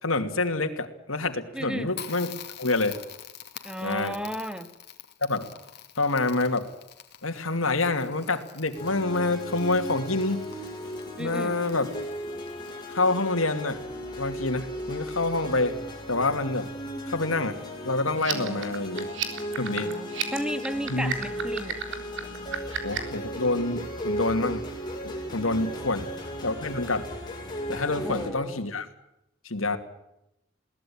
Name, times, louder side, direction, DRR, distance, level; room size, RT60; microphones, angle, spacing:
voice 1, 0.0-3.0 3.8-4.1 5.2-5.5 6.0-6.7 7.2-10.5 11.2-11.9 12.9-13.8 14.2-15.8 16.1-16.7 17.1-17.6 17.8-19.1 19.6-20.0 20.9-21.1 22.8-24.6 25.0-26.1 26.4-27.1 27.7-28.9 29.4-29.8, left 2 dB, 85° left, 7 dB, 2.8 m, -27 dB
voice 2, 1.5-1.9 3.6-4.7 11.2-11.6 18.3-18.7 19.7-21.8 25.5-26.0 27.9-28.6, equal, 5° right, 10 dB, 2.0 m, -35 dB
Crackle, 1.9-13.5, left 10 dB, 55° left, 2.6 m, -46 dB
sound 1, 8.7-28.3, equal, 20° left, 6.8 m, -36 dB
sound 2, 18.1-23.2, right 8 dB, 65° right, 3.8 m, -33 dB
22.0 x 18.5 x 8.9 m, 0.84 s
head